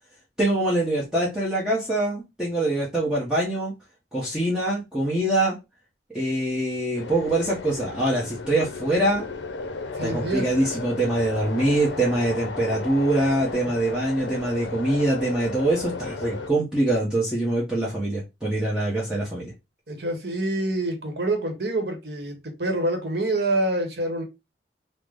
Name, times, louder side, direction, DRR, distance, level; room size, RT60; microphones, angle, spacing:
voice 1, 0.4-3.7 4.1-5.6 6.1-9.2 10.0-19.5, right 1 dB, 5° right, 0.8 m, -24 dB
sound 1, 6.9-16.5, left 3 dB, 65° left, 0.6 m, -34 dB
voice 2, 10.0-10.5 19.9-24.2, right 2 dB, 55° right, 0.9 m, -26 dB
3.7 x 2.1 x 3.3 m
head